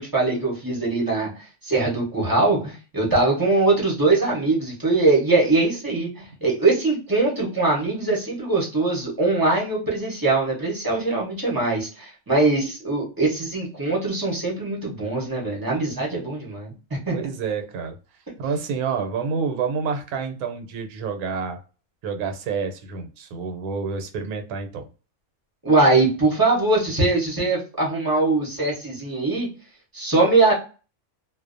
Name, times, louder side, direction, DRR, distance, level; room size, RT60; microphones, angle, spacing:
voice 1, 0.0-16.7 17.1-17.2 25.6-29.5 29.9-30.5, right 3 dB, 25° right, 0.5 m, -22 dB
voice 2, 17.1-18.0 18.4-21.6 22.0-24.9, right 5 dB, 80° right, 1.1 m, -28 dB
2.5 x 2.0 x 2.4 m
omnidirectional pair, 1.6 m